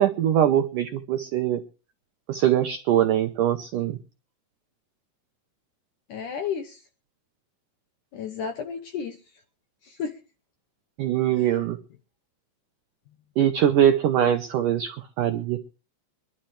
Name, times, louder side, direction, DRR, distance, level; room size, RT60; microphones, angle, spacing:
voice 1, 0.0-1.6 2.3-4.0 11.0-11.8 13.4-15.6, right 10 dB, 90° right, 8 dB, 1.8 m, -22 dB
voice 2, 6.1-6.8 8.1-9.2 9.8-10.1 11.4-11.6, left 7 dB, 75° left, 5 dB, 1.9 m, -32 dB
25.0 x 11.5 x 3.2 m, 0.35 s
omnidirectional pair, 5.0 m